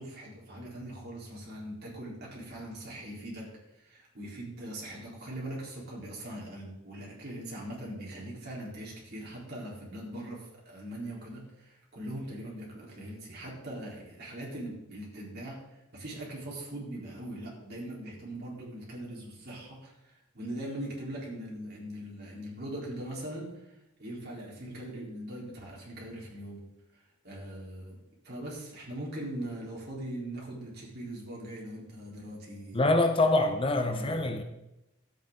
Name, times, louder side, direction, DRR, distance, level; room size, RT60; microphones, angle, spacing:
voice 1, 0.0-26.6 26.9-28.0 28.2-32.8 33.8-34.3, right 1 dB, 50° right, 4.0 m, -41 dB
voice 2, 32.7-34.4, left 2 dB, 25° left, 0.7 m, -25 dB
13.5 x 8.7 x 3.9 m
head